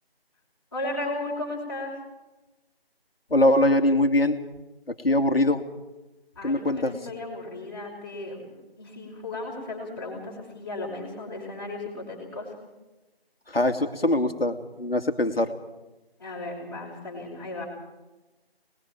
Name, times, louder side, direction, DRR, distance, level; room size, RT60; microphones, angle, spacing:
voice 1, 0.7-1.9 6.4-12.5 16.2-17.7, left 2 dB, 25° left, -3 dB, 5.6 m, -35 dB
voice 2, 3.3-4.4 4.9-5.6 6.4-6.9 13.5-15.5, left 1 dB, 70° left, 7 dB, 2.4 m, -22 dB
28.5 x 20.5 x 4.7 m, 1.0 s
figure-of-eight pair, 170°, 31 cm